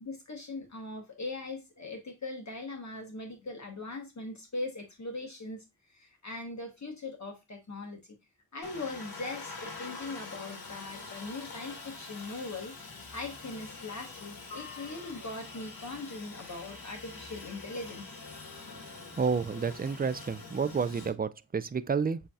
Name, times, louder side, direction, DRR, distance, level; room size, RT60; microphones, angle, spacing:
voice 1, 0.0-5.6 5.9-8.0 8.5-12.7 13.1-18.1, left 2 dB, 50° left, 1.1 m, -40 dB
Aircraft, 8.6-21.1, left 4 dB, 80° left, 1.3 m, -45 dB
voice 2, 19.1-22.2, right 5 dB, 25° right, 0.4 m, -30 dB
7.6 x 2.7 x 2.3 m
wide cardioid pair, 65°, 36 cm